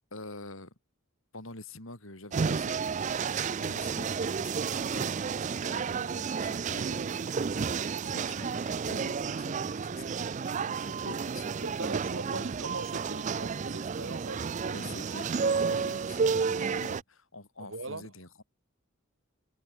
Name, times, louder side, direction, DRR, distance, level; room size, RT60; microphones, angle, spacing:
voice 1, 0.1-0.7 1.3-3.2 3.6-7.2 8.0-11.8 12.3-12.5 14.7-18.4, left 2 dB, 70° left, 6.2 m, -47 dB
sound 1, 2.3-17.0, right 5 dB, 35° right, 0.4 m, -31 dB
voice 2, 11.6-14.8 15.4-15.8 17.6-18.1, right 2 dB, 65° right, 2.8 m, -40 dB
head